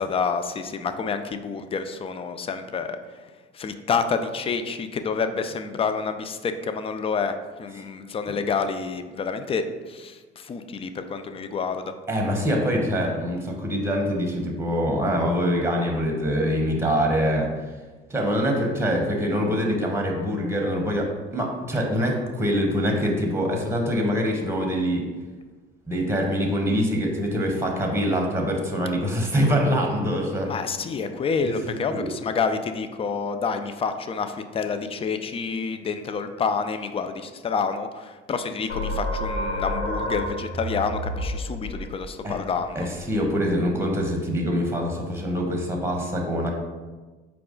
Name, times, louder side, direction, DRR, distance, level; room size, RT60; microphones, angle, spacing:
voice 1, 0.0-3.3 3.5-11.9 30.5-42.9, left 5 dB, 20° left, 9 dB, 0.3 m, -28 dB
voice 2, 12.1-17.5 18.1-25.1 25.9-30.5 31.4-32.1 42.2-42.3 42.7-46.5, equal, 10° right, 1 dB, 0.9 m, -24 dB
sound 1, 38.7-44.0, equal, 90° left, 0.7 m, -31 dB
4.6 x 2.3 x 3.7 m, 1.3 s
hypercardioid pair, 60°, 30 cm